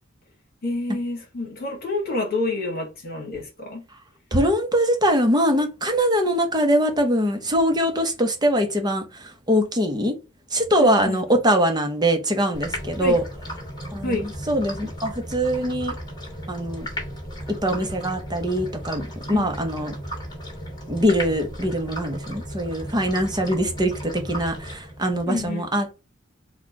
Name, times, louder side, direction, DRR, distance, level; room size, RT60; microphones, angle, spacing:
voice 1, 0.6-3.8 10.8-11.2 13.0-13.2 14.0-14.3 19.3-19.5 25.3-25.7, left 2 dB, 50° left, 1.4 m, -28 dB
voice 2, 4.3-10.1 10.5-13.2 13.9-15.9 16.5-16.9 17.6-19.9 20.9-25.9, equal, 20° right, 0.9 m, -22 dB
sound 1, 12.5-25.2, equal, 20° left, 1.8 m, -35 dB
4.3 x 2.4 x 4.6 m
head